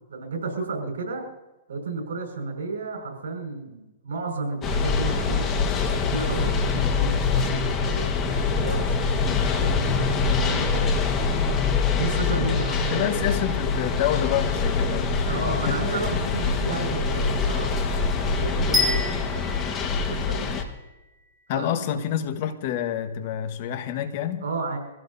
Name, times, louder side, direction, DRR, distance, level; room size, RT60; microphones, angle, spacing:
voice 1, 0.1-1.3 1.7-5.7 6.1-10.9 11.9-13.3 15.2-19.5 20.0-20.5 21.5-22.1 24.4-24.8, right 3 dB, 80° right, 2 dB, 5.8 m, -32 dB
sound 1, 4.6-20.6, left 5 dB, 20° left, 1.5 m, -24 dB
voice 2, 12.3-16.1 21.5-24.4, left 10 dB, 45° left, 8 dB, 1.5 m, -28 dB
sound 2, 18.7-20.8, left 2 dB, 10° right, 3.3 m, -27 dB
25.0 x 16.0 x 2.8 m, 1.0 s
hypercardioid pair, 155°, 0 cm